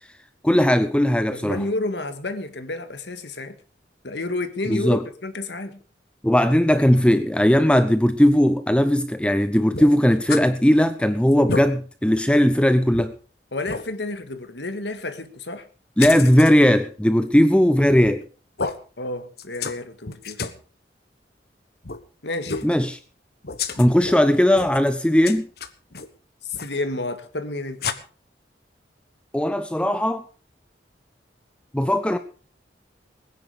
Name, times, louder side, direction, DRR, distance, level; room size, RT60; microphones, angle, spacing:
voice 1, 0.4-1.6 4.7-5.0 6.2-13.1 16.0-18.2 22.6-23.0 23.8-25.5 29.3-30.2 31.7-32.2, equal, 5° left, 0.6 m, -18 dB
voice 2, 1.3-3.6 4.0-5.8 13.5-15.7 19.0-20.4 22.2-22.6 26.6-27.9, left 2 dB, 75° left, 1.9 m, -30 dB
sound 1, 9.7-10.5 10.8-10.9 11.3-11.7 12.2-12.3 12.9-13.1 13.7-13.8 16.0-16.5 17.9-18.2 18.6-18.8 19.4-19.8 20.1-20.6 21.8-22.0 22.4-22.7 23.4-24.2 24.5-24.9 25.2-26.1 26.5-26.8 27.8-27.9, left 5 dB, 60° left, 1.3 m, -30 dB
20.0 x 10.0 x 5.0 m
head